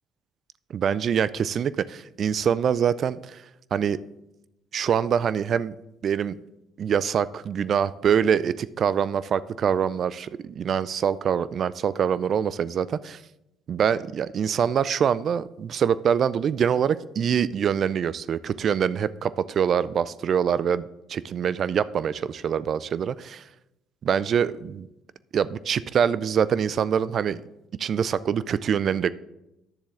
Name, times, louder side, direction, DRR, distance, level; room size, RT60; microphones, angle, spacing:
voice 1, 0.7-3.4 3.7-4.0 4.7-5.7 6.0-6.4 6.8-13.2 13.7-20.8 21.1-23.4 24.0-24.9 25.3-27.4 27.8-29.1, right 8 dB, 55° right, 18 dB, 0.3 m, -24 dB
10.0 x 7.0 x 3.8 m, 0.90 s
hypercardioid pair, 60°, 0 cm